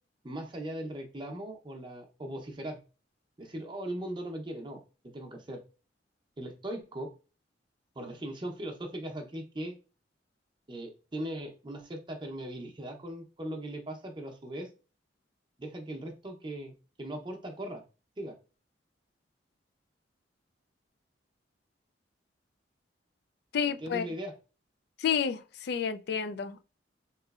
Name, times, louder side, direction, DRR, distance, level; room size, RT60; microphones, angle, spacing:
voice 1, 0.2-2.8 3.4-5.6 6.4-7.1 8.0-9.7 10.7-14.7 15.6-17.8 18.2-18.3 23.8-24.3, right 1 dB, 25° right, 0.7 m, -39 dB
voice 2, 23.5-24.0 25.0-26.6, left 7 dB, 60° left, 0.3 m, -30 dB
3.6 x 3.0 x 2.4 m
head